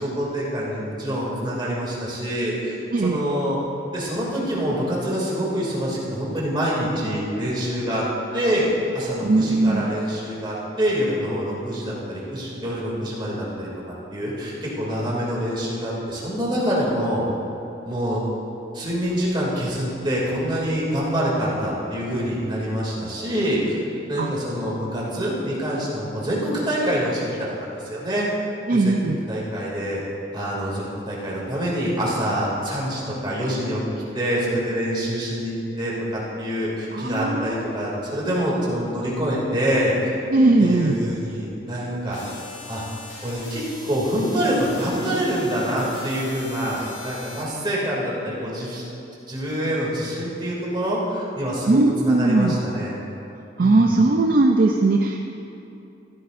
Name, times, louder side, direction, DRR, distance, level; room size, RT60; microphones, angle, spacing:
voice 1, 0.0-3.6 3.9-8.0 8.3-8.7 8.9-13.7 14.1-17.3 17.8-18.2 18.7-23.8 24.1-28.3 28.7-29.0 29.3-30.0 30.3-33.8 34.1-40.1 40.6-42.2 42.7-42.8 43.2-48.8 49.3-52.9 53.6-54.0, equal, 25° right, -6 dB, 2.6 m, -26 dB
voice 2, 9.2-9.8 24.2-24.4 28.7-29.2 36.9-38.2 40.3-41.0 51.7-52.6 53.6-55.2, right 2 dB, 50° right, 2 dB, 0.5 m, -19 dB
sound 1, 42.1-47.4, left 3 dB, 80° left, 1.9 m, -41 dB
14.0 x 13.0 x 2.6 m, 2.8 s
head